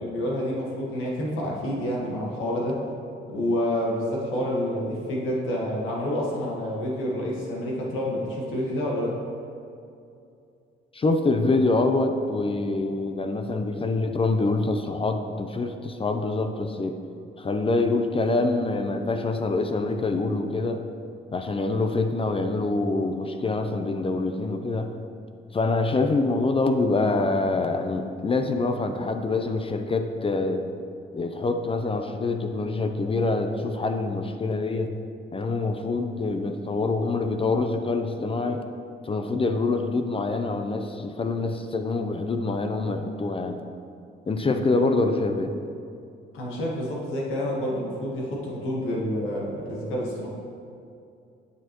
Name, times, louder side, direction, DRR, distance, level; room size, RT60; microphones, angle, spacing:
voice 1, 0.0-2.8 3.3-9.2 46.3-50.3, equal, 90° left, -3 dB, 1.5 m, -28 dB
voice 2, 10.9-17.0 17.4-20.8 21.3-24.9 25.5-30.6 31.1-34.9 35.3-38.6 39.0-43.6 44.3-45.5, left 3 dB, 25° left, 6 dB, 0.6 m, -25 dB
9.5 x 6.3 x 3.0 m, 2.5 s
cardioid pair, 90°, 20 cm